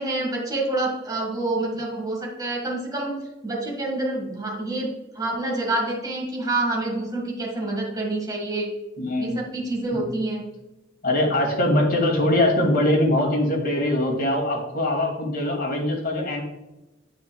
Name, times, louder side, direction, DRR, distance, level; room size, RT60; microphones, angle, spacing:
voice 1, 0.0-3.1 3.4-8.7 9.2-10.4, right 2 dB, 20° right, -2 dB, 1.8 m, -27 dB
voice 2, 9.0-9.4 9.9-10.0 11.0-16.4, left 1 dB, 50° left, 0 dB, 2.5 m, -22 dB
9.6 x 8.6 x 2.3 m, 1.0 s
head